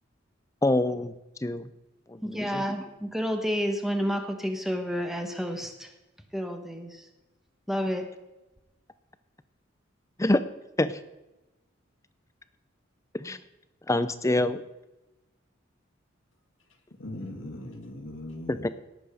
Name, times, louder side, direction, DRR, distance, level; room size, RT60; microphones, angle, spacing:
voice 1, 0.6-1.7 2.1-2.6 10.2-10.4 10.8-11.0 13.2-13.4 13.9-14.6 18.5-18.7, left 1 dB, 15° left, 0.6 m, -26 dB
voice 2, 2.2-5.9 6.3-7.0 7.7-8.1, equal, ahead, 1.3 m, -30 dB
voice 3, 17.0-18.7, left 1 dB, 75° left, 1.9 m, -39 dB
18.0 x 7.9 x 5.1 m
head